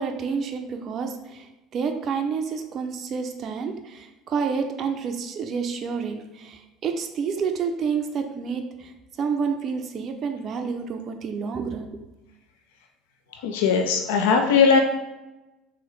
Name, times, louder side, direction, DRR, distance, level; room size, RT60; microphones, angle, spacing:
voice 1, 0.0-8.9 9.2-11.9, right 5 dB, 45° right, 5 dB, 0.4 m, -29 dB
voice 2, 13.4-14.8, left 5 dB, 70° left, 3 dB, 0.4 m, -19 dB
3.6 x 3.0 x 3.1 m, 1.0 s
hypercardioid pair, 65°, 0 cm